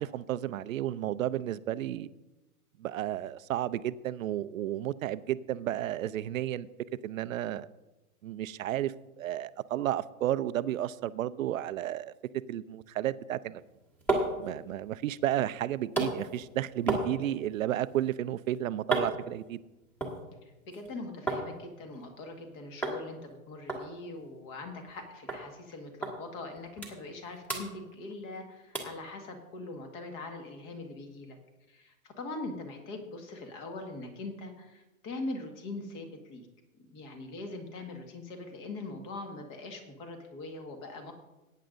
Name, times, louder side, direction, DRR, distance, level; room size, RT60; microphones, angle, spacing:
voice 1, 0.0-2.1 2.8-6.7 7.0-7.7 8.2-12.1 12.5-13.6 14.4-19.6, right 12 dB, 65° right, 15 dB, 0.6 m, -32 dB
sound 1, 13.6-21.5 21.8-22.4 22.8-23.0 23.3-23.4 23.7-25.0 25.3-25.4 26.0-26.2 26.5-27.2 27.4-28.4 28.7-29.0 29.5-29.6, right 2 dB, 5° left, 1.5 m, -35 dB
voice 2, 20.4-31.4 31.7-36.5 36.8-41.1, left 2 dB, 30° left, 4 dB, 1.7 m, -42 dB
18.0 x 9.2 x 2.6 m, 1.0 s
hypercardioid pair, 145°, 43 cm